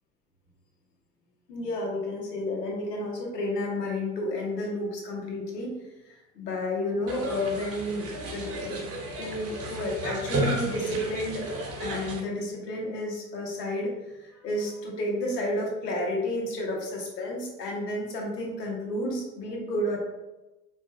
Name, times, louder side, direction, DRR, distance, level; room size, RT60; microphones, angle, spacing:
voice 1, 1.5-5.7 6.0-8.8 9.2-20.0, left 1 dB, 80° left, 0 dB, 1.2 m, -31 dB
sound 1, 7.1-12.2, right 2 dB, 30° right, 1.0 m, -32 dB
4.7 x 3.2 x 2.2 m, 1.0 s
hypercardioid pair, 80°, 48 cm